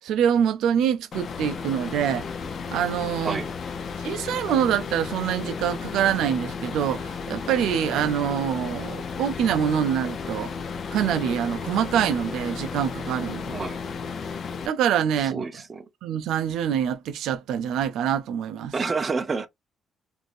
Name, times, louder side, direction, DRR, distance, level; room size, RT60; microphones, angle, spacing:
voice 1, 0.0-2.3 2.7-3.4 4.0-10.5 10.9-13.7 14.7-15.4 16.0-18.7, right 9 dB, 85° right, 0.3 m, -25 dB
sound 1, 1.1-14.7, left 5 dB, 55° left, 0.6 m, -34 dB
voice 2, 15.2-15.9 18.7-19.5, right 4 dB, 30° right, 0.6 m, -29 dB
3.2 x 2.6 x 2.5 m
cardioid pair, 90°, 0 cm